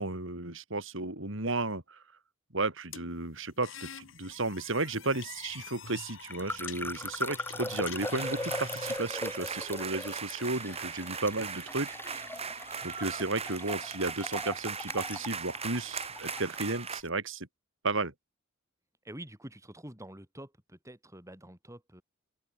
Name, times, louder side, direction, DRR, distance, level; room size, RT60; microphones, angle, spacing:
voice 1, 0.0-2.0 2.5-12.0 12.8-17.5 17.8-18.1, right 2 dB, 65° right, 4.5 m, -33 dB
sound 1, 2.9-9.0, left 7 dB, 70° left, 2.8 m, -46 dB
sound 2, 6.2-17.0, left 1 dB, 10° left, 6.3 m, -40 dB
sound 3, 8.0-17.0, right 6 dB, 30° right, 2.7 m, -39 dB
voice 2, 19.0-22.0, right 1 dB, 15° right, 6.1 m, -47 dB
open air
head